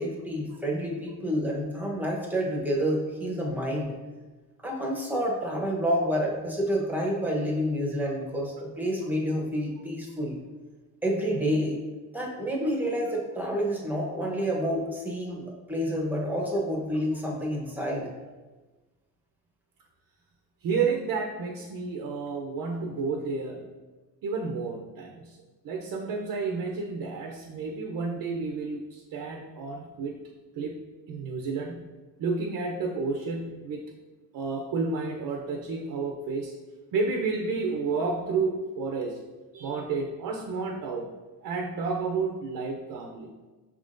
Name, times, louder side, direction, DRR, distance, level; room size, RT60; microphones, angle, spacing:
voice 1, 0.0-3.9 4.6-10.4 11.0-11.8 12.1-18.1, equal, 5° right, -2 dB, 0.9 m, -29 dB
voice 2, 20.6-23.6 24.2-25.4 25.6-30.2 30.6-30.8 31.1-31.9 32.2-33.8 34.3-36.5 36.9-39.2 39.5-41.1 41.4-43.3, right 4 dB, 65° right, 1 dB, 0.6 m, -31 dB
5.9 x 3.6 x 2.5 m, 1.3 s
cardioid pair, 110°, 37 cm